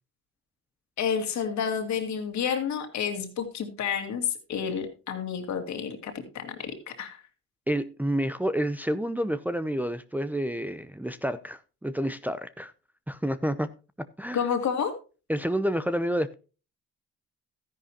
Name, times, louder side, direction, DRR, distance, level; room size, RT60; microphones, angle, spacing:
voice 1, 1.0-7.2 14.3-14.9, left 7 dB, 65° left, 2.3 m, -30 dB
voice 2, 7.7-12.7 13.1-13.7 14.2-14.4 15.3-16.3, equal, 5° right, 0.6 m, -29 dB
13.5 x 10.5 x 2.8 m
cardioid pair, 90°, 30 cm